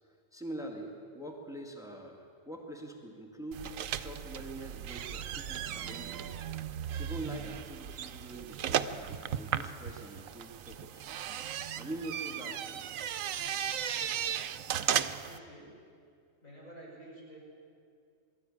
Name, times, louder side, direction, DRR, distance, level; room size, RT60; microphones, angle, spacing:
voice 1, 0.3-6.3 7.0-11.1 11.7-12.8, right 1 dB, ahead, 1 dB, 2.0 m, -44 dB
sound 1, 3.5-15.4, right 9 dB, 80° right, 1.1 m, -36 dB
voice 2, 14.9-15.7 16.4-17.4, right 1 dB, 85° left, -4 dB, 6.3 m, -50 dB
21.0 x 13.5 x 10.0 m, 2.4 s
omnidirectional pair, 1.4 m